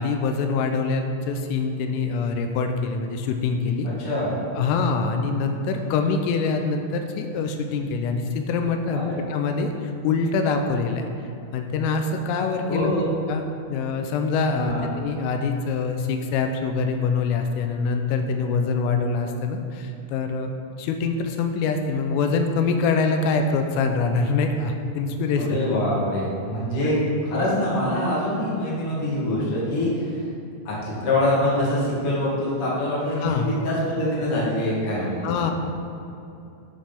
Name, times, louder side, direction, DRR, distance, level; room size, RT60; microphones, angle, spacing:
voice 1, 0.0-3.9 4.5-11.0 11.5-12.9 13.3-20.5 20.8-25.6 26.8-26.9 33.2-33.5 35.2-35.5, left 4 dB, 90° left, 5 dB, 3.3 m, -24 dB
voice 2, 4.0-4.3 8.9-9.2 12.7-13.1 14.6-14.8 25.4-26.9 27.2-30.2 30.6-35.3, left 1 dB, 45° left, -6 dB, 2.0 m, -24 dB
10.0 x 5.4 x 5.8 m, 2.7 s
omnidirectional pair, 5.8 m